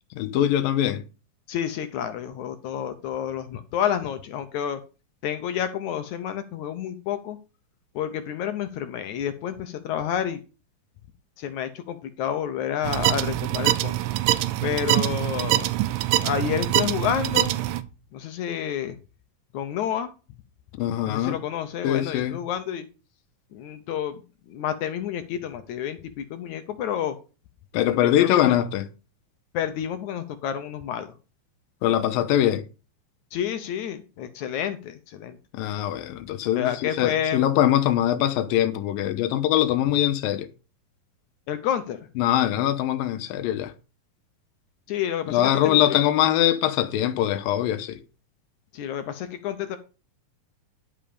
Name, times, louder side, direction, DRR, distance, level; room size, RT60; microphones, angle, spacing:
voice 1, 0.1-1.0 20.8-21.4 21.8-22.4 27.7-28.9 31.8-32.6 35.5-40.5 42.2-43.7 45.3-48.0, left 12 dB, 85° left, 2.6 m, -22 dB
voice 2, 1.5-4.8 5.2-7.4 8.0-10.4 11.4-14.0 14.6-15.7 16.2-17.6 18.1-19.0 19.5-20.1 21.1-22.9 23.5-24.2 24.5-27.2 27.8-28.6 29.5-31.1 33.3-35.4 36.6-37.4 41.5-42.1 44.9-46.0 48.7-49.8, left 9 dB, 70° left, 1.9 m, -29 dB
sound 1, 12.8-17.8, right 14 dB, 85° right, 2.4 m, -24 dB
11.0 x 5.5 x 5.1 m
omnidirectional pair, 4.0 m